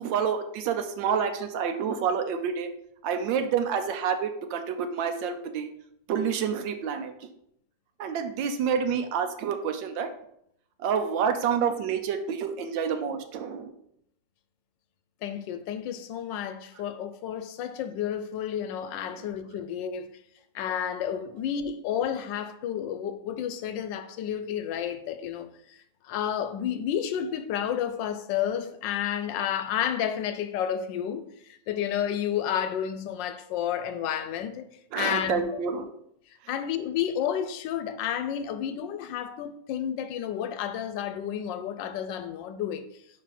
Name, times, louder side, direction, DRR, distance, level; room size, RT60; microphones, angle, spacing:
voice 1, 0.0-2.7 3.0-5.7 6.1-7.1 8.0-10.1 10.8-13.7 34.9-35.9, right 7 dB, 90° right, 1.4 m, -28 dB
voice 2, 15.2-20.1 20.5-25.8 26.0-31.2 31.7-34.6 35.0-35.4 36.5-42.8, left 9 dB, 80° left, 1.3 m, -31 dB
5.5 x 4.8 x 4.2 m
omnidirectional pair, 2.0 m